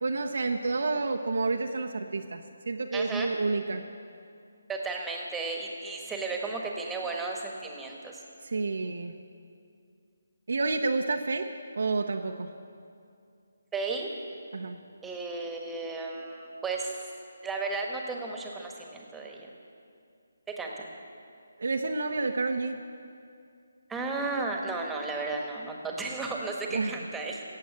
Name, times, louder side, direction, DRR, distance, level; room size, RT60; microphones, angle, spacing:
voice 1, 0.0-3.8 8.4-9.1 10.5-11.4 11.8-12.5 14.5-14.8 21.6-22.8 26.7-26.9, right 3 dB, 65° right, 3 dB, 0.7 m, -29 dB
voice 2, 2.9-3.3 4.7-8.2 13.7-14.1 15.0-17.0 17.4-19.5 20.6-20.9 23.9-27.4, right 3 dB, 5° right, 0 dB, 1.4 m, -34 dB
15.5 x 7.6 x 8.6 m, 2.4 s
figure-of-eight pair, 150°, 0 cm